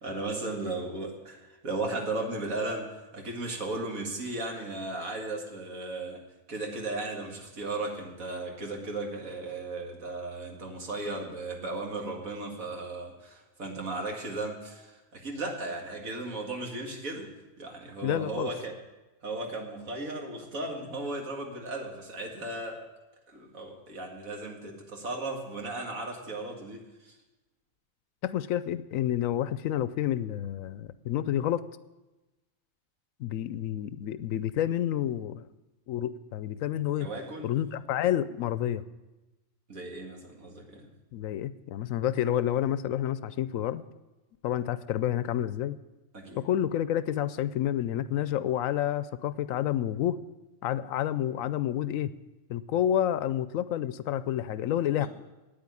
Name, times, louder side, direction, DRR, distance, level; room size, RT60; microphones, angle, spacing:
voice 1, 0.0-2.9 3.1-6.2 6.5-17.3 17.6-18.8 19.2-22.8 23.3-27.1 37.0-37.5 39.7-40.9 46.1-46.4 54.9-55.1, right 2 dB, 75° right, 1 dB, 2.3 m, -36 dB
voice 2, 18.0-18.5 28.2-31.6 33.2-35.4 35.9-37.1 37.4-38.8 41.1-43.8 44.4-45.8 46.4-50.2 50.6-52.1 52.5-55.1, left 11 dB, 75° left, 15 dB, 0.9 m, -29 dB
9.3 x 8.7 x 9.7 m, 1.1 s
omnidirectional pair, 1.4 m